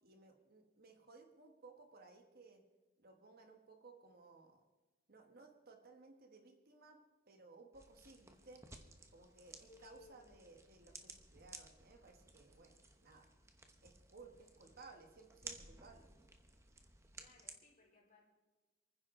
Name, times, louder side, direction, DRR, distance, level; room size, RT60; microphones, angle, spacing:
voice 1, 0.0-2.6 3.0-4.6 5.1-7.0 7.3-8.6 9.1-13.3 13.8-16.1, right 3 dB, 45° right, 4 dB, 1.3 m, -60 dB
sound 1, 7.7-17.5, right 3 dB, 15° right, 0.9 m, -57 dB
voice 2, 9.4-10.4 17.1-18.2, left 3 dB, 35° left, -2 dB, 4.5 m, -64 dB
28.0 x 10.0 x 3.7 m, 1.2 s
head